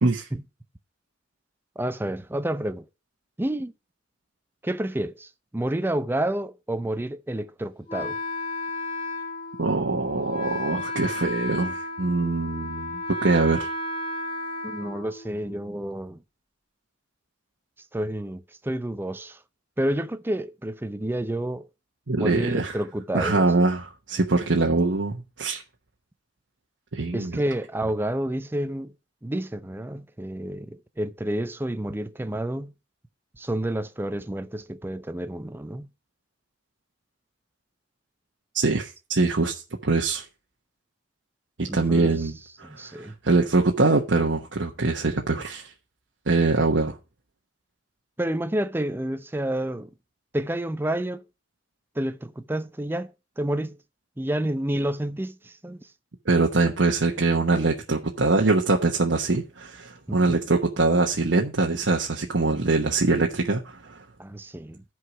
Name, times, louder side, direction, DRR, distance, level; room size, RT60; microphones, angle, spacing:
voice 1, 1.8-2.8 3.4-3.7 4.6-8.2 14.6-16.2 17.9-19.4 19.8-21.7 22.2-23.5 27.1-28.9 29.2-32.7 33.4-35.9 41.7-42.3 42.6-43.1 48.2-49.9 50.3-51.2 52.0-53.8 54.2-55.9 60.1-60.4 64.2-64.8, right 1 dB, 10° right, 0.5 m, -29 dB
Wind instrument woodwind instrument, 7.9-15.6, left 2 dB, 25° left, 1.8 m, -33 dB
voice 2, 9.6-13.7 22.1-22.8 23.1-25.6 26.9-27.4 38.5-40.2 41.6-45.7 46.3-47.0 56.3-64.0, right 3 dB, 75° right, 1.1 m, -23 dB
11.0 x 4.8 x 5.9 m
head